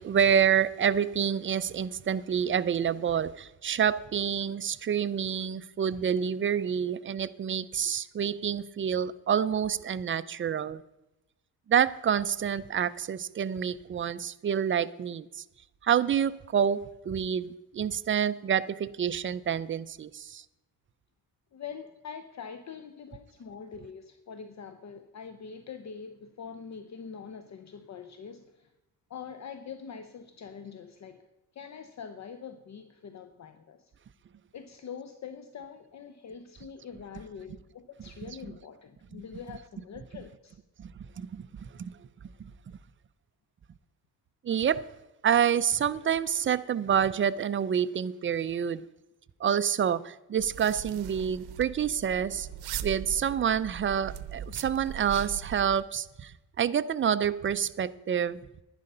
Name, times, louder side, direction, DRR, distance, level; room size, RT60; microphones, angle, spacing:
voice 1, 0.0-10.8 11.7-15.4 15.8-20.4 40.8-40.9 41.2-41.9 42.4-42.5 44.4-44.9 45.2-48.8 49.4-52.5 52.8-56.3 56.6-58.4, right 8 dB, 35° right, 0.5 m, -28 dB
voice 2, 21.5-28.7 29.1-31.2 31.5-33.9 34.5-40.6, left 6 dB, 45° left, 0.8 m, -44 dB
sound 1, 50.4-55.8, right 9 dB, 85° right, 0.8 m, -40 dB
10.5 x 10.5 x 5.5 m
cardioid pair, 120°, 38 cm